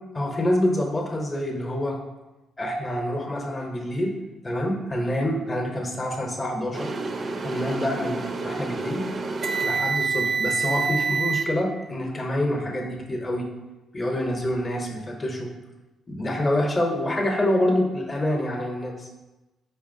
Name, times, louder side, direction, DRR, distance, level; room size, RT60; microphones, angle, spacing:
voice 1, 0.1-2.0 2.6-4.2 4.4-6.9 7.4-9.1 9.6-13.5 13.9-15.5 16.1-19.0, left 1 dB, 25° left, 1 dB, 0.7 m, -26 dB
sound 1, 6.7-11.5, right 4 dB, 40° right, 0.4 m, -27 dB
4.6 x 2.9 x 2.5 m, 1.0 s
cardioid pair, 90°, 0 cm